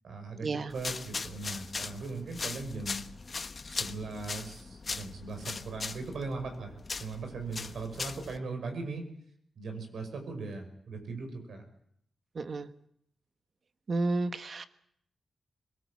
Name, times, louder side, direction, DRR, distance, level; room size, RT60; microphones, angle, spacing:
voice 1, 0.0-3.0 3.7-6.7 7.0-9.1 9.6-11.6, right 3 dB, 80° right, 5 dB, 5.4 m, -39 dB
sound 1, 0.7-8.4, left 4 dB, 40° left, 1.1 m, -39 dB
voice 2, 12.3-12.7 13.9-14.6, right 3 dB, 50° right, 10 dB, 1.4 m, -31 dB
21.5 x 19.5 x 8.5 m, 0.70 s
wide cardioid pair, 105°, 0 cm